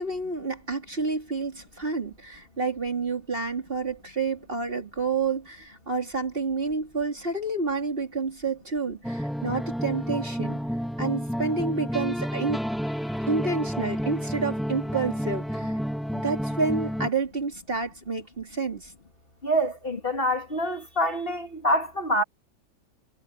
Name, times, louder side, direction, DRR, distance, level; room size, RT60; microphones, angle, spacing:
voice 1, 0.0-10.6 11.0-12.6 13.3-15.7 16.1-18.9, right 4 dB, 30° right, 3.0 m, -29 dB
sound 1, 9.0-17.1, equal, ahead, 1.5 m, -30 dB
voice 2, 19.4-22.2, equal, 30° left, 2.4 m, -26 dB
omnidirectional pair, 1.8 m